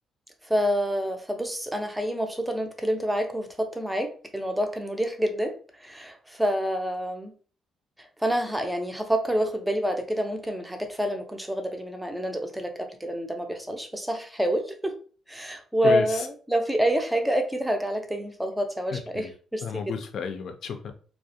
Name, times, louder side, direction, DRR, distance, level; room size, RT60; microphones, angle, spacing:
voice 1, 0.4-7.3 8.2-15.0 15.3-19.9, equal, 5° right, 5 dB, 0.5 m, -28 dB
voice 2, 15.8-16.3 18.9-19.3 19.6-20.9, left 6 dB, 65° left, 6 dB, 0.4 m, -32 dB
2.3 x 2.1 x 2.7 m, 0.41 s
cardioid pair, 90°, 0 cm